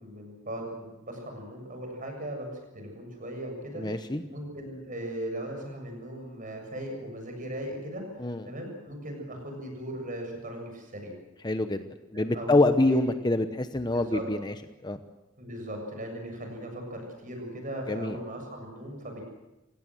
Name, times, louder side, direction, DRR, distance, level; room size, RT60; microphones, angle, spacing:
voice 1, 0.0-8.0 8.4-11.1 12.1-13.1 13.9-14.2 15.4-19.2, right 1 dB, 40° right, 3 dB, 7.3 m, -38 dB
voice 2, 3.8-4.2 8.2-8.4 11.4-11.8 12.1-14.5 14.8-15.0 17.9-18.1, left 2 dB, 20° left, 9 dB, 0.9 m, -25 dB
28.5 x 17.0 x 7.8 m, 1.0 s
head